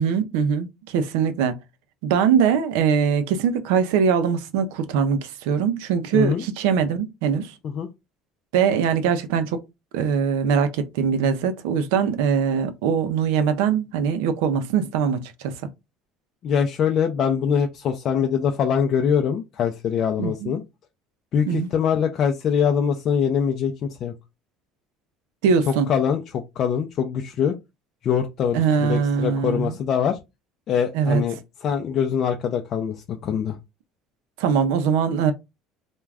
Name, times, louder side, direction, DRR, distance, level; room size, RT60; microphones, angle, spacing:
voice 1, 0.0-1.6 2.0-7.5 8.5-9.6 9.9-15.6 20.2-20.5 21.5-21.7 25.4-25.9 28.5-29.8 30.9-31.2 34.4-35.3, right 7 dB, 85° right, 0.4 m, -22 dB
voice 2, 6.1-6.4 7.6-7.9 16.4-20.6 21.3-24.1 25.7-27.6 28.0-30.2 30.7-31.4 31.6-33.6, left 7 dB, 50° left, 0.4 m, -23 dB
2.3 x 2.2 x 3.3 m
supercardioid pair, 110°, 0 cm